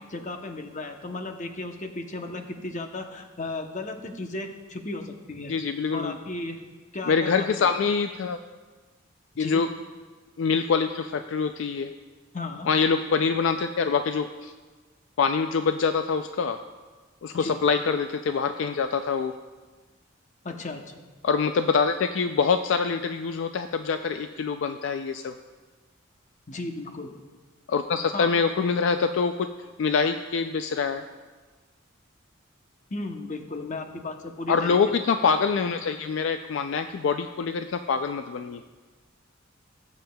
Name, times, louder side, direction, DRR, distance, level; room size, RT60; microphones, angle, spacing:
voice 1, 0.1-5.5 5.9-6.6 6.9-7.7 9.4-9.6 12.3-12.7 17.3-17.6 20.4-21.0 26.5-27.1 28.1-28.3 32.9-34.8 35.2-35.4, left 2 dB, 40° left, 4 dB, 0.8 m, -35 dB
voice 2, 5.5-6.1 7.1-8.4 9.4-9.7 10.4-11.9 12.7-14.5 15.2-16.6 17.2-19.3 21.2-25.3 27.7-29.5 29.8-31.0 34.5-38.6, left 5 dB, 65° left, 8 dB, 0.3 m, -25 dB
18.5 x 7.4 x 2.3 m, 1.3 s
head